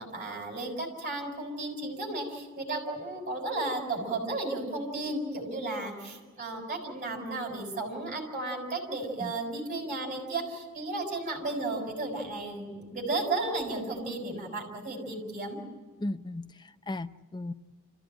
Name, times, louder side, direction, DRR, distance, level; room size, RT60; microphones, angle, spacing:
voice 1, 0.0-15.6, right 2 dB, 35° right, 6.5 m, -34 dB
voice 2, 16.0-17.5, left 2 dB, 20° left, 0.6 m, -36 dB
28.0 x 15.5 x 9.0 m
head